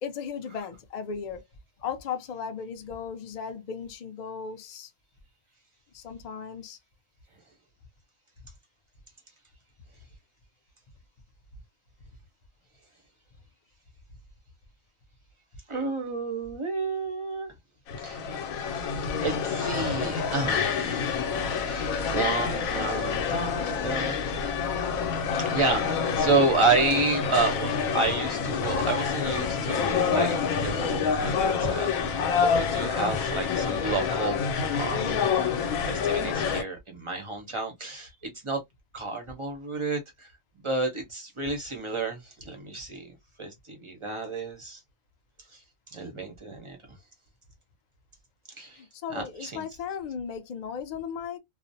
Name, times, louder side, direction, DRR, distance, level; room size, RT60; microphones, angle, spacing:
voice 1, 0.0-1.4 1.8-4.9 5.9-6.8 48.7-51.4, left 7 dB, 60° left, 0.4 m, -36 dB
voice 2, 15.7-17.5 18.0-18.5 19.2-21.3 21.7-24.2 25.4-34.4 34.7-35.2 35.8-38.6 38.9-44.8 45.5-45.6 45.9-46.8 48.6-48.8 49.1-49.6, right 3 dB, 35° right, 0.5 m, -30 dB
sound 1, 17.9-36.6, left 6 dB, 90° left, 1.0 m, -27 dB
2.4 x 2.0 x 2.6 m
omnidirectional pair, 1.4 m